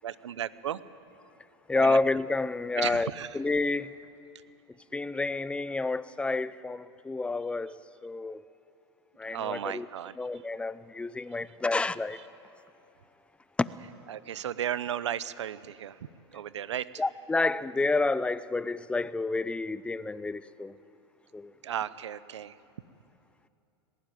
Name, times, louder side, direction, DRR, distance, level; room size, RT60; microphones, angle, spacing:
voice 1, 0.0-0.8 1.7-2.0 2.8-3.4 9.3-10.4 12.1-12.2 14.1-16.0 16.3-17.0 21.6-22.6, right 10 dB, 85° right, 0.8 m, -35 dB
voice 2, 1.7-3.9 4.9-7.7 8.0-8.4 9.2-9.9 10.2-12.2 13.6-13.7 17.0-20.7 21.3-21.5, left 3 dB, 10° left, 0.6 m, -29 dB
20.0 x 17.0 x 9.2 m
hypercardioid pair, 110°, 15 cm